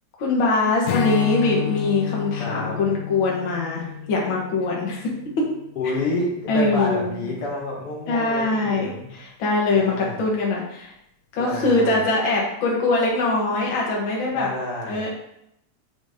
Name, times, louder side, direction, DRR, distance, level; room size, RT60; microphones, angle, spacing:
voice 1, 0.2-5.1 6.5-7.3 8.1-10.9 11.3-14.5 14.9-15.1, left 3 dB, 70° left, -3 dB, 1.2 m, -22 dB
Strum, 0.9-6.3, left 9 dB, 85° left, 2.4 m, -31 dB
voice 2, 2.3-2.8 5.8-9.1 9.7-10.2 11.4-12.0 14.3-15.0, left 2 dB, 50° left, -3 dB, 1.9 m, -29 dB
7.9 x 5.6 x 2.8 m, 0.77 s
omnidirectional pair, 4.2 m